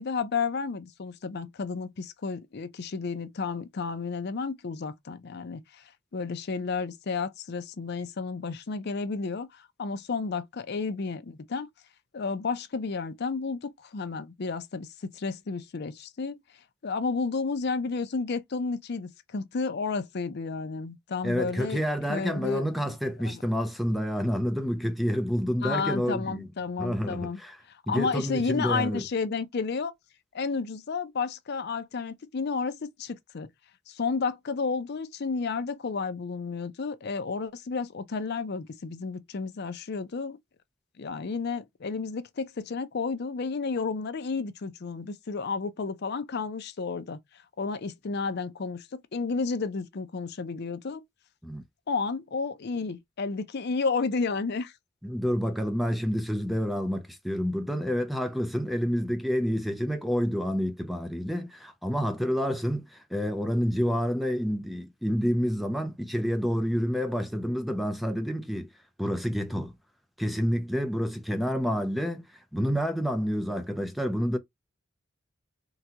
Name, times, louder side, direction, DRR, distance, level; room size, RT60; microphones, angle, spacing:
voice 1, 0.0-11.7 12.1-16.4 16.8-21.8 22.1-22.9 23.2-23.4 25.6-27.4 27.7-29.9 30.3-33.5 33.9-40.4 41.0-47.2 47.6-51.0 51.9-54.7, left 4 dB, 50° left, 0.5 m, -32 dB
voice 2, 21.2-26.5 26.8-27.6 27.9-29.0 51.4-51.6 55.0-68.7 69.0-69.7 70.2-74.4, equal, ahead, 0.5 m, -28 dB
3.7 x 2.3 x 2.8 m
head